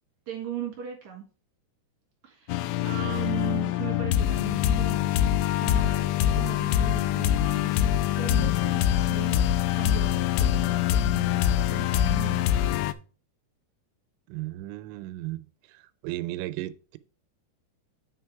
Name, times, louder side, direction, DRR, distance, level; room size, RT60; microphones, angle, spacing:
voice 1, 0.3-1.2 2.2-5.1 5.6-9.5 9.7-12.8, right 10 dB, 60° right, 2.2 m, -38 dB
sound 1, 2.5-12.9, left 11 dB, 85° left, 2.7 m, -24 dB
voice 2, 14.3-15.5 16.0-17.0, right 17 dB, 90° right, 2.9 m, -34 dB
8.6 x 4.9 x 4.6 m
omnidirectional pair, 5.2 m